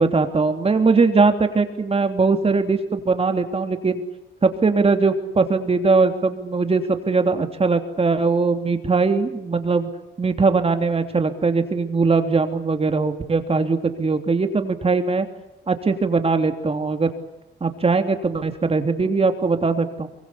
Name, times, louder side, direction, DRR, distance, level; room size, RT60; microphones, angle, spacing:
voice 1, 0.0-4.0 4.4-9.9 10.2-15.3 15.7-17.1 17.6-20.1, right 4 dB, 30° right, 6 dB, 3.2 m, -20 dB
24.0 x 23.5 x 8.6 m, 0.97 s
cardioid pair, 90°, 20 cm